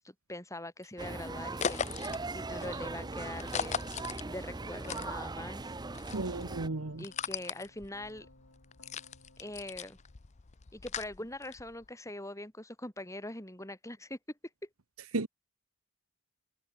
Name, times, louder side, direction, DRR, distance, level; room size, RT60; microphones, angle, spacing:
voice 1, 0.0-5.7 7.0-8.3 9.4-10.0 10.7-14.2 14.6-14.7, left 1 dB, 15° left, 4.7 m, -43 dB
sound 1, 1.0-6.7, right 3 dB, 20° right, 0.7 m, -39 dB
sound 2, 1.6-5.6 5.9-11.9, left 7 dB, 30° left, 0.5 m, -39 dB
voice 2, 6.1-7.0 15.1-15.3, right 2 dB, 70° right, 1.2 m, -34 dB
Keyboard (musical), 6.6-10.9, left 1 dB, 60° left, 7.1 m, -61 dB
head